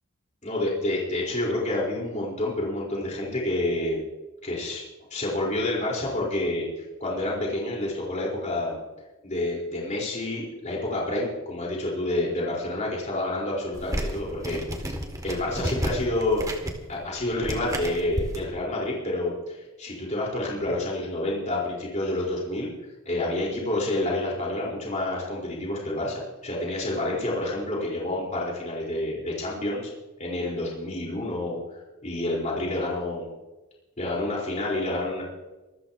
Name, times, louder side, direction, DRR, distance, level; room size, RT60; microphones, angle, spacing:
voice 1, 0.4-4.0 4.4-4.8 5.1-8.8 9.2-14.6 15.2-16.4 16.9-22.7 23.0-29.8 30.2-31.6 32.0-33.3 34.0-35.2, left 1 dB, 35° left, -4 dB, 4.6 m, -28 dB
sound 1, 13.7-18.4, equal, 15° right, 2.0 m, -32 dB
25.5 x 13.5 x 3.0 m, 1.1 s
head